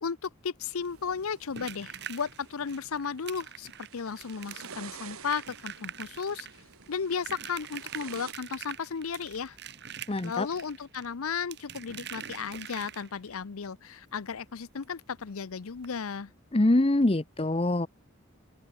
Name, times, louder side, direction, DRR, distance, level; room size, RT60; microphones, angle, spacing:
voice 1, 0.0-6.5 6.9-9.6 10.2-16.3, left 6 dB, 85° left, 0.7 m, -34 dB
sound 1, 0.6-8.3, right 6 dB, 90° right, 2.1 m, -50 dB
sound 2, 0.8-13.4 14.8-14.9 15.2-15.3 15.8-15.9, right 8 dB, 50° right, 3.4 m, -44 dB
voice 2, 10.1-10.5 16.5-17.9, left 1 dB, 25° left, 0.7 m, -24 dB
open air
head